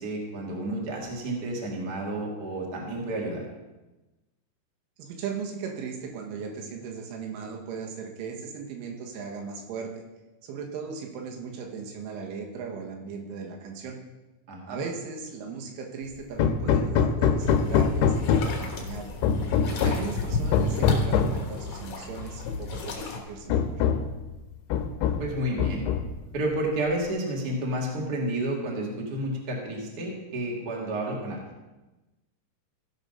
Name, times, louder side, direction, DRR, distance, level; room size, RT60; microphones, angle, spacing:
voice 1, 0.0-3.4 14.5-14.8 25.2-25.8 26.3-31.4, right 1 dB, 60° right, -2 dB, 0.9 m, -30 dB
voice 2, 5.0-10.0 10.4-14.0 14.7-19.1 19.7-23.6, right 5 dB, 85° right, 1 dB, 3.9 m, -37 dB
Hammer, 16.4-18.7 19.2-20.1 20.5-21.4 22.5-22.6 23.0-23.1 23.5-24.2 24.7-25.3 25.6-26.3, left 6 dB, 85° left, 2.9 m, -24 dB
sound 1, 17.4-23.2, left 4 dB, 60° left, 2.5 m, -33 dB
16.0 x 5.8 x 5.3 m, 1.1 s
omnidirectional pair, 5.5 m